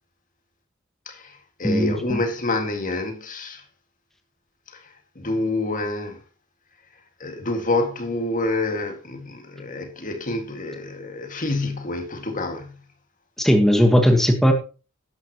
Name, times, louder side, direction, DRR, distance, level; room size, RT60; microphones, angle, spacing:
voice 1, 1.1-3.6 4.7-6.2 7.2-12.8, left 2 dB, 40° left, 2.0 m, -28 dB
voice 2, 1.6-2.2 13.4-14.5, equal, ahead, 1.5 m, -17 dB
13.0 x 11.0 x 3.0 m
head